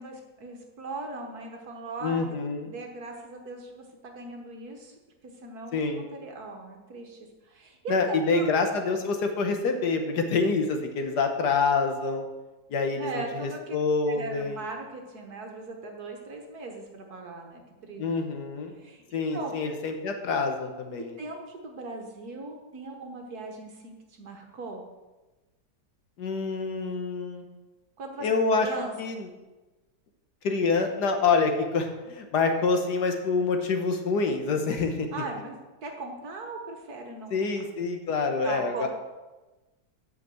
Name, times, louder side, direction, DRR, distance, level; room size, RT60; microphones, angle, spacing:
voice 1, 0.0-2.4 2.6-4.9 5.2-7.2 7.4-8.5 13.0-13.8 14.1-18.0 18.7-19.0 19.3-19.7 21.2-24.8 28.0-28.3 28.6-28.9 35.1-35.5 35.8-37.5 38.4-38.9, right 3 dB, 60° right, 2 dB, 1.6 m, -39 dB
voice 2, 2.0-2.7 5.7-6.0 7.9-12.3 12.7-14.6 18.0-18.7 19.1-21.2 26.2-27.4 28.2-28.7 29.0-29.3 30.4-35.1 37.3-38.9, left 4 dB, 65° left, 5 dB, 1.6 m, -26 dB
8.2 x 5.7 x 7.6 m, 1.1 s
omnidirectional pair, 2.0 m